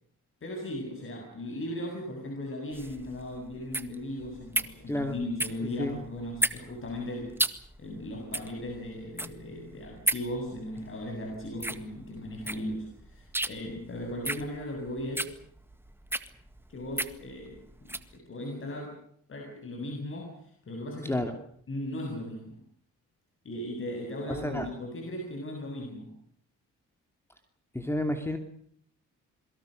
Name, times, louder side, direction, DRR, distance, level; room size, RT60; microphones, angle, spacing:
voice 1, 0.4-7.5 7.8-15.4 16.7-19.0 19.3-21.2 21.7-22.6 23.4-26.1, left 1 dB, 45° left, 2 dB, 7.7 m, -37 dB
sound 1, 2.7-18.1, right 1 dB, 5° right, 1.8 m, -34 dB
voice 2, 4.9-5.2 5.8-6.0 21.0-21.3 24.3-24.7 27.7-28.4, left 1 dB, 10° left, 6 dB, 2.9 m, -30 dB
27.5 x 23.0 x 6.6 m, 0.63 s
cardioid pair, 90°, 30 cm